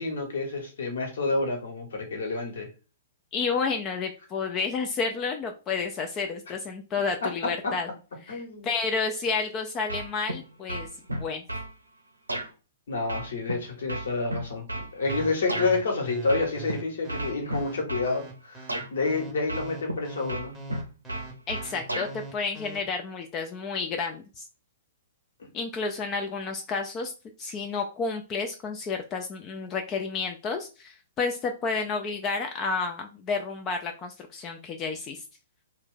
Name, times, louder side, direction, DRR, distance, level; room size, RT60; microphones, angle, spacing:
voice 1, 0.0-2.7 7.2-7.3 7.6-7.7 8.3-8.7 12.9-14.6 14.9-20.5, left 3 dB, 60° left, 2 dB, 1.1 m, -29 dB
voice 2, 3.3-7.9 8.2-10.9 11.2-11.4 21.5-24.4 25.5-27.1 27.4-35.2, left 4 dB, 25° left, 4 dB, 0.3 m, -31 dB
sound 1, 9.9-10.4 10.7-11.7 12.3-12.5 13.1-15.7 16.3-16.7 17.1-18.1 18.7-18.9 19.5-20.0 20.3-22.1, right 1 dB, 85° right, 0.5 m, -32 dB
sound 2, 15.0-22.8, right 3 dB, 5° right, 0.8 m, -42 dB
2.4 x 2.2 x 3.7 m, 0.33 s
figure-of-eight pair, 115°, 0 cm